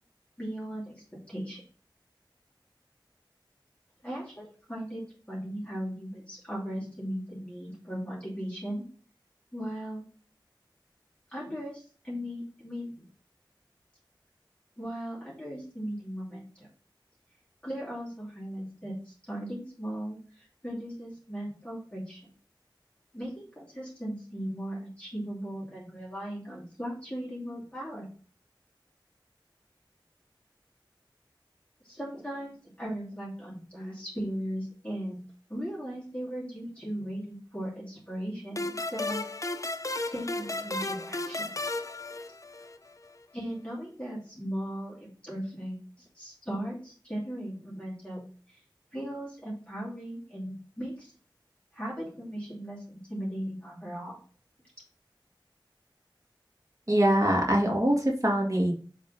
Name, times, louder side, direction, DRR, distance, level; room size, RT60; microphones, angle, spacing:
voice 1, 0.4-1.6 4.0-5.0 5.3-8.8 9.5-10.0 11.3-13.0 14.8-16.7 17.6-22.2 23.1-28.1 31.8-35.2 35.5-39.2 40.1-41.5 43.3-48.6 48.9-51.1 51.7-54.2, equal, 15° left, -7 dB, 2.6 m, -37 dB
sound 1, 38.6-42.9, left 2 dB, 40° left, 0.5 m, -34 dB
voice 2, 56.9-58.7, right 1 dB, 40° right, -1 dB, 2.1 m, -23 dB
5.3 x 3.6 x 5.2 m, 0.41 s
wide cardioid pair, 40°, 8 cm